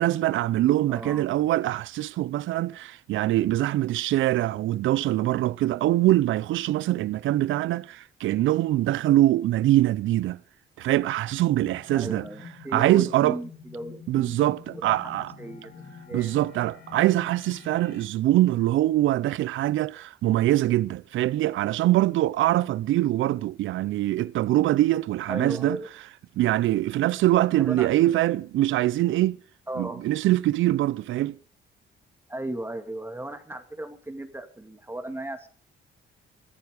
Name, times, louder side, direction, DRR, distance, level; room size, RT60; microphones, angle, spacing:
voice 1, 0.0-10.4 10.8-12.3 12.7-13.4 14.1-15.3 16.1-25.8 26.4-29.4 29.8-31.4, right 15 dB, 75° right, 0.6 m, -23 dB
voice 2, 0.9-1.3 11.9-14.4 14.7-15.1 15.4-16.3 25.3-25.9 27.6-28.0 29.7-30.0 32.3-35.5, right 1 dB, 10° right, 2.1 m, -36 dB
sound 1, 11.3-18.1, left 5 dB, 60° left, 3.5 m, -47 dB
14.5 x 14.5 x 5.0 m
cardioid pair, 90°, 20 cm